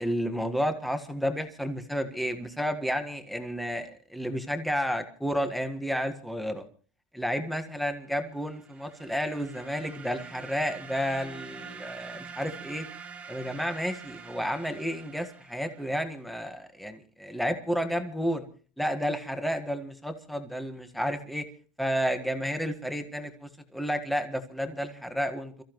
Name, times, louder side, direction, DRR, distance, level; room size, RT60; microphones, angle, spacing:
voice 1, 0.0-6.6 7.1-12.9 13.3-18.5 18.8-21.4 21.8-25.6, equal, ahead, 6 dB, 1.6 m, -31 dB
sound 1, 8.3-16.1, right 6 dB, 20° right, 1.5 m, -46 dB
28.5 x 14.5 x 3.1 m, 0.40 s
cardioid pair, 150°, 6 cm